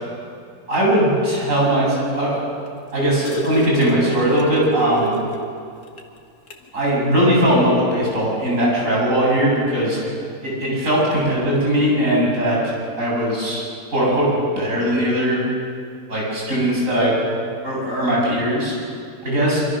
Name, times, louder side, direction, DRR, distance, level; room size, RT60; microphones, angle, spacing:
voice 1, 0.7-2.5 2.9-5.1 6.7-10.0 10.4-12.6 13.0-13.6 13.9-15.5 16.1-17.2 17.6-18.7 19.2-19.6, equal, 50° right, -5 dB, 8.6 m, -19 dB
sound 1, 2.7-5.6 6.0-6.1 6.5-6.7 7.8-7.9, right 3 dB, 60° left, 2.5 m, -27 dB
25.5 x 25.0 x 6.4 m, 2.4 s
omnidirectional pair, 1.8 m